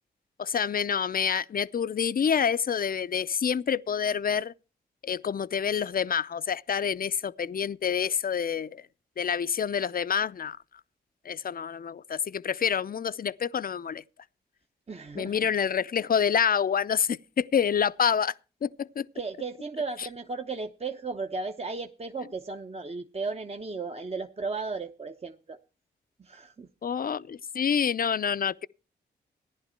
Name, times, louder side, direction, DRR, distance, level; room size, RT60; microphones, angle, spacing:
voice 1, 0.4-4.5 5.0-8.8 9.2-10.6 11.3-14.0 15.1-18.3 18.6-19.1 20.0-20.1 26.8-28.7, left 7 dB, 50° left, 0.6 m, -27 dB
voice 2, 14.9-15.5 19.1-25.6 26.2-26.7, right 4 dB, 30° right, 1.0 m, -35 dB
15.0 x 10.5 x 4.4 m
supercardioid pair, 45°, 19 cm